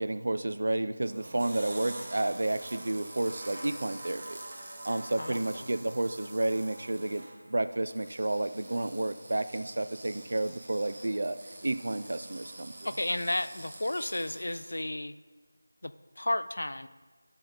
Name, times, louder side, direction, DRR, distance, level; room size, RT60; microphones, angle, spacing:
voice 1, 0.0-4.4 4.8-11.4 11.6-12.7, right 2 dB, 60° right, 12 dB, 0.4 m, -31 dB
sound 1, 1.0-14.8, right 2 dB, 35° right, 0.9 m, -46 dB
voice 2, 5.2-5.7 12.8-15.1 15.8-16.9, left 1 dB, 70° left, 13 dB, 0.3 m, -33 dB
6.9 x 5.4 x 5.5 m, 1.4 s
figure-of-eight pair, 170°, 0 cm